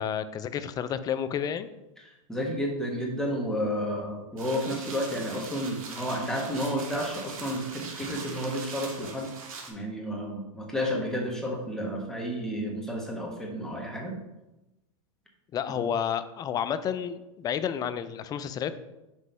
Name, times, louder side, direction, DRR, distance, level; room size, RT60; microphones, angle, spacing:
voice 1, 0.0-1.7 15.5-18.8, left 8 dB, 20° left, 12 dB, 0.3 m, -30 dB
voice 2, 2.3-9.3 9.7-14.2, equal, 5° left, -2 dB, 1.4 m, -31 dB
sound 1, 4.4-9.7, right 4 dB, 80° right, 1.2 m, -41 dB
6.1 x 3.0 x 5.4 m, 0.98 s
hypercardioid pair, 125°, 18 cm